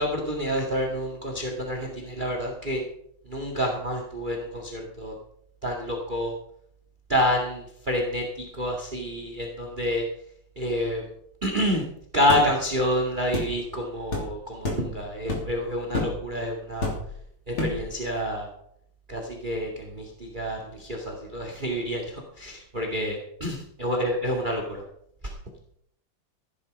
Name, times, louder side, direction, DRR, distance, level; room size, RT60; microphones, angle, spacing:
voice 1, 0.0-2.8 3.3-5.1 5.6-6.4 7.1-10.0 10.6-11.0 11.4-11.9 12.1-17.0 17.5-18.5 19.1-24.8 25.2-25.3, equal, 20° right, 1 dB, 2.3 m, -28 dB
sound 1, 12.3-12.5 13.3-13.5 14.1-14.3 14.6-14.9 15.3-15.6 15.9-16.2 16.8-17.2 17.6-17.9, left 2 dB, 80° left, 4.1 m, -28 dB
15.5 x 10.5 x 5.3 m, 0.68 s
omnidirectional pair, 2.4 m